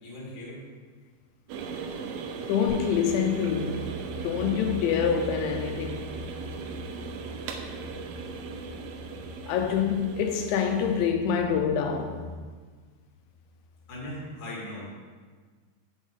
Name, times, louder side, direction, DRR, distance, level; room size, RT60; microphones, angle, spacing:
voice 1, 0.0-0.6 13.9-15.0, left 1 dB, 30° left, 1.4 m, -39 dB
sound 1, 1.5-11.1, right 5 dB, 85° right, 2.3 m, -38 dB
voice 2, 2.5-6.1 9.5-12.2, left 7 dB, 90° left, 3.1 m, -26 dB
sound 2, 2.7-12.3, equal, 40° right, 0.4 m, -42 dB
8.0 x 7.2 x 3.8 m
omnidirectional pair, 5.1 m